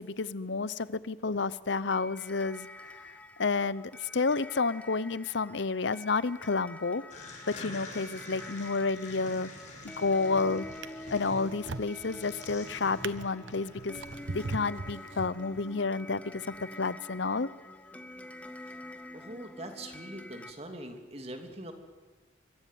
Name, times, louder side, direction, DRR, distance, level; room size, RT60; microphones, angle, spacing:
voice 1, 0.0-3.1 3.4-7.0 7.5-9.5 10.0-10.7 11.1-14.0 14.3-17.5, left 4 dB, 65° left, 18 dB, 0.7 m, -30 dB
sound 1, 1.9-20.5, left 1 dB, 5° left, 1.1 m, -47 dB
sound 2, 7.1-15.7, left 2 dB, 40° left, 6.8 m, -48 dB
Drawer open or close, 9.6-10.1 10.6-15.8 16.5-16.7, right 3 dB, 75° right, 1.0 m, -41 dB
voice 2, 19.1-21.7, right 1 dB, 30° right, 5 dB, 3.0 m, -42 dB
24.5 x 23.0 x 9.4 m, 1.4 s
head